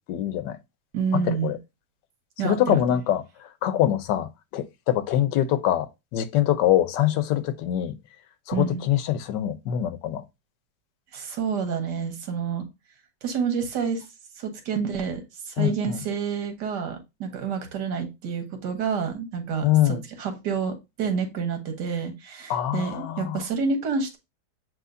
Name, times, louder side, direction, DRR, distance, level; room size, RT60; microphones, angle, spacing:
voice 1, 0.1-0.6 1.1-1.5 2.4-3.2 3.6-5.9 6.1-8.0 8.5-10.2 15.6-16.0 19.6-20.0 22.5-23.4, left 12 dB, 90° left, 1.3 m, -24 dB
voice 2, 0.9-1.5 2.4-3.0 8.5-8.8 11.1-12.7 13.2-14.0 14.4-24.2, right 6 dB, 80° right, 1.6 m, -28 dB
7.6 x 2.7 x 2.5 m
omnidirectional pair, 1.8 m